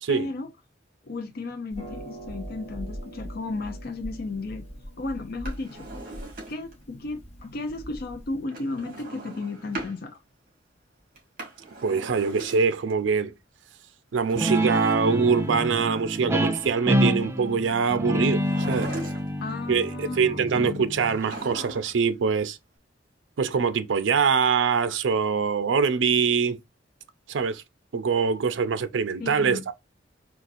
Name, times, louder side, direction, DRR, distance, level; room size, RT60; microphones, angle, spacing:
voice 1, 0.1-0.5 1.0-4.6 5.0-5.9 6.5-10.2 19.4-20.9 29.2-29.6, left 3 dB, 55° left, 0.5 m, -34 dB
Harp, 1.7-8.4, equal, 35° left, 1.0 m, -41 dB
Drawer open or close, 5.3-6.8 8.5-10.0 11.1-12.9 14.2-15.8 18.3-19.5 21.0-22.1 22.3-22.4, right 2 dB, 50° right, 1.9 m, -40 dB
voice 2, 11.8-13.3 14.1-18.9 19.7-22.6 23.4-26.6 27.3-27.6 27.9-29.7, right 5 dB, 80° right, 0.5 m, -24 dB
Guitar, 14.4-21.5, equal, 15° right, 0.4 m, -27 dB
4.0 x 2.4 x 2.5 m
head